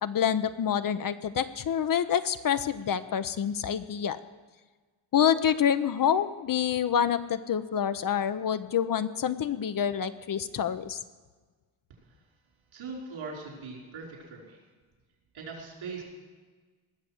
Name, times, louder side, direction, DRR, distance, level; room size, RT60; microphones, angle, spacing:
voice 1, 0.0-4.2 5.1-11.0, left 8 dB, 45° left, 11 dB, 0.7 m, -27 dB
voice 2, 12.7-14.6 15.3-16.0, right 4 dB, 75° right, -2 dB, 5.3 m, -40 dB
19.5 x 6.9 x 7.6 m, 1.4 s
cardioid pair, 100°, 47 cm